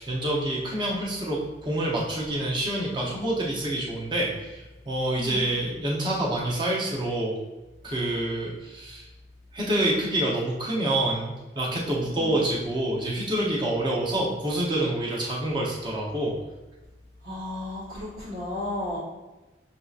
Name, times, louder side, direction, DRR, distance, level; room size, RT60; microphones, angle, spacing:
voice 1, 0.0-7.4 7.8-9.1 9.5-16.3, right 1 dB, 25° right, -4 dB, 0.7 m, -27 dB
voice 2, 17.2-19.0, left 1 dB, 65° right, -12 dB, 1.3 m, -33 dB
6.1 x 2.7 x 2.4 m, 1.1 s
head